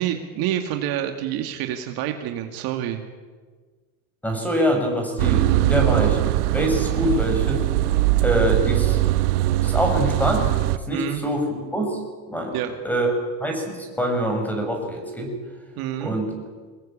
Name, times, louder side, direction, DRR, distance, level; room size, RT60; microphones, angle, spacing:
voice 1, 0.0-3.0 10.9-11.2 12.5-12.7 15.8-16.2, right 11 dB, 50° right, 5 dB, 2.3 m, -27 dB
voice 2, 4.2-6.2 6.5-7.7 8.2-9.0 9.6-10.6 10.9-12.0 12.3-12.6 12.8-13.1 13.4-15.3 16.0-16.4, equal, 5° left, 3 dB, 6.0 m, -24 dB
sound 1, 5.2-10.8, right 16 dB, 90° right, 1.1 m, -21 dB
25.0 x 20.5 x 8.8 m, 1.4 s
supercardioid pair, 145°, 45 cm